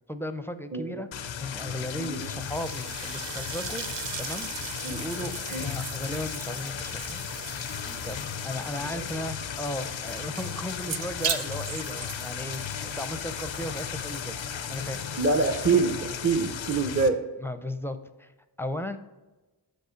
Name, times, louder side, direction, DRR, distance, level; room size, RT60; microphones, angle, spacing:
voice 1, 0.1-1.1 1.4-3.8 4.2-4.5 4.9-7.3 7.8-14.4 14.7-15.0 17.4-18.3 18.6-19.0, left 1 dB, 5° left, 10 dB, 0.5 m, -36 dB
sound 1, 1.1-17.1, left 8 dB, 90° left, 0.6 m, -35 dB
voice 2, 2.0-2.3 4.8-5.0 5.5-5.7 8.9-9.0 15.2-17.2, right 4 dB, 30° right, 3 dB, 0.7 m, -25 dB
sound 2, 2.3-16.6, right 8 dB, 70° right, 0.6 m, -40 dB
6.0 x 5.4 x 5.1 m, 1.2 s
wide cardioid pair, 55°, 44 cm